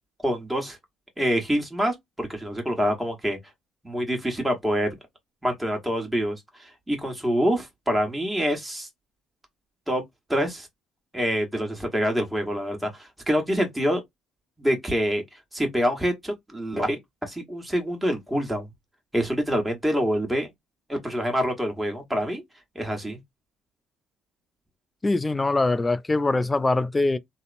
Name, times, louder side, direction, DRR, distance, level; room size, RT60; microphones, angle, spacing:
voice 1, 0.2-0.8 1.2-3.4 3.8-4.9 5.4-8.9 9.9-10.0 10.3-10.7 11.1-14.0 14.6-15.2 15.5-18.7 19.1-20.5 20.9-22.4 22.7-23.2, equal, 10° right, 1.1 m, -26 dB
voice 2, 25.0-27.2, left 2 dB, 20° left, 0.3 m, -23 dB
2.8 x 2.0 x 2.4 m
supercardioid pair, 75°, 0 cm